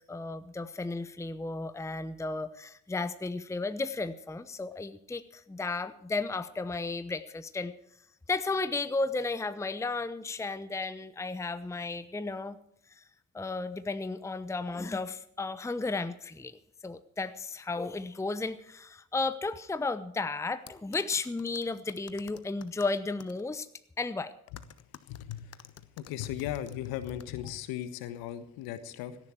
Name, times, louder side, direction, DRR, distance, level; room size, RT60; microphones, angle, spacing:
voice 1, 0.1-7.7 8.3-12.6 13.0-13.1 13.3-16.6 16.8-23.7 24.0-24.3, left 3 dB, 5° left, 13 dB, 0.8 m, -34 dB
sound 1, 20.7-23.4 24.6-27.5, left 9 dB, 40° left, 1.1 m, -52 dB
voice 2, 25.1-25.5 26.0-29.2, left 12 dB, 65° left, 12 dB, 1.4 m, -37 dB
17.0 x 14.5 x 4.6 m, 0.70 s
figure-of-eight pair, 45°, 39 cm